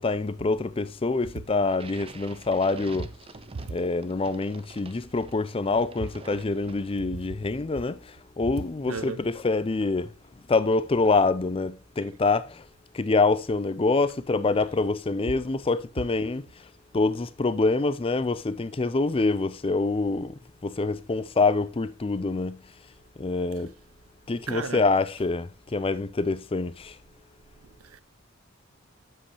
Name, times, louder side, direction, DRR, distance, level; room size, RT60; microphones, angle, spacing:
voice 1, 0.0-3.1 3.7-8.0 8.4-10.1 10.5-12.6 12.9-16.4 16.9-22.6 23.2-23.7 24.3-26.9, left 3 dB, 25° left, 0.5 m, -26 dB
sound 1, 1.7-7.2, right 3 dB, 25° right, 0.7 m, -47 dB
voice 2, 8.9-9.2 24.5-24.8 27.8-28.0, right 5 dB, 90° right, 0.7 m, -34 dB
8.5 x 7.6 x 3.0 m
head